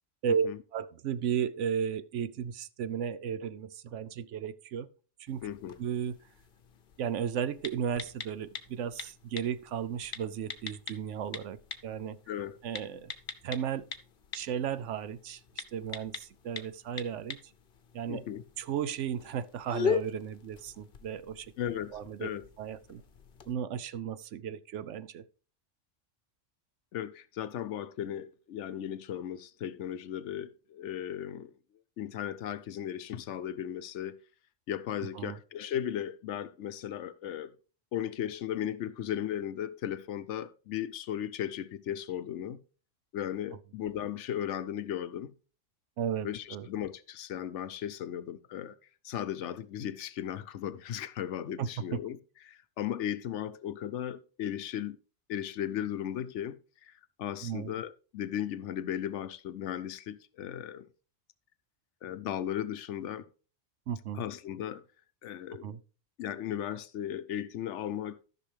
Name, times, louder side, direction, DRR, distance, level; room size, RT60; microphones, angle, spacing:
voice 1, 0.2-4.9 5.2-5.5 5.8-6.2 7.0-12.2 12.6-13.1 13.4-13.9 14.3-17.4 17.9-18.2 18.6-21.5 21.9-22.3 22.6-23.0 23.5-25.2 35.1-35.4 46.0-46.7 51.6-52.0 57.4-57.7 63.9-64.2 65.6-65.8, right 8 dB, 75° right, 0.9 m, -34 dB
sound 1, 5.3-23.5, left 6 dB, 50° left, 0.9 m, -41 dB
voice 2, 5.4-5.8 12.3-12.6 18.1-18.4 21.6-22.5 26.9-31.5 32.0-34.2 34.7-37.5 37.9-42.6 43.1-45.3 46.2-48.7 49.0-52.2 52.5-55.0 55.3-60.9 62.0-63.3 64.1-64.8 65.2-65.7 66.2-68.2, left 10 dB, 75° left, 0.9 m, -36 dB
13.5 x 5.9 x 3.3 m
omnidirectional pair, 1.3 m